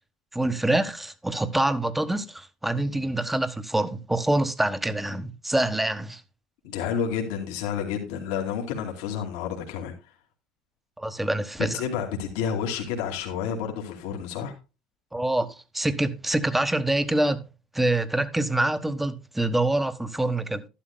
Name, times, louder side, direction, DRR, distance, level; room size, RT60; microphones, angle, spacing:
voice 1, 0.3-6.2 11.0-11.8 15.1-17.4 17.7-20.7, right 1 dB, 5° right, 1.2 m, -25 dB
voice 2, 6.6-9.9 11.6-14.5, left 7 dB, 80° left, 2.5 m, -30 dB
12.0 x 11.5 x 2.2 m
supercardioid pair, 85°, 2 cm